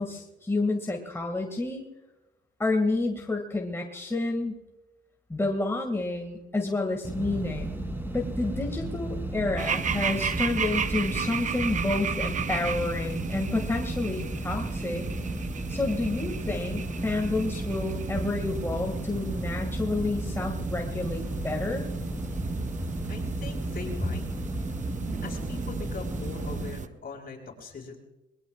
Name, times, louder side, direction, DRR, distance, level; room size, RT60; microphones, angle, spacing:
voice 1, 0.0-1.8 2.6-4.6 5.3-15.1 15.7-21.8, left 2 dB, 10° left, 1 dB, 2.1 m, -29 dB
sound 1, 7.0-26.7, right 1 dB, 10° right, 3.1 m, -34 dB
sound 2, 9.6-26.9, right 7 dB, 40° right, 0.7 m, -35 dB
voice 2, 23.1-24.3 25.2-28.0, left 4 dB, 50° left, 2 dB, 4.8 m, -41 dB
22.0 x 21.0 x 2.4 m, 0.98 s
cardioid pair, 90°, 20 cm